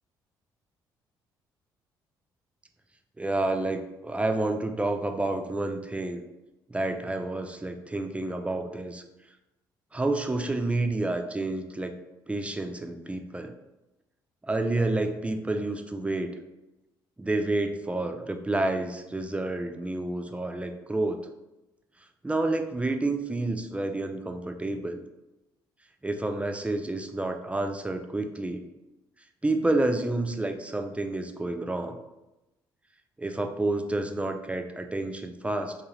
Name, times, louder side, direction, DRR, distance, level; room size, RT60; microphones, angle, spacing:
voice 1, 3.2-6.2 6.7-9.0 9.9-11.9 12.3-13.6 14.4-16.4 17.2-21.2 22.2-25.0 26.0-28.6 29.4-32.0 33.2-35.8, right 2 dB, 10° right, 5 dB, 0.4 m, -29 dB
2.5 x 2.3 x 3.1 m, 0.96 s
hypercardioid pair, 50°, 11 cm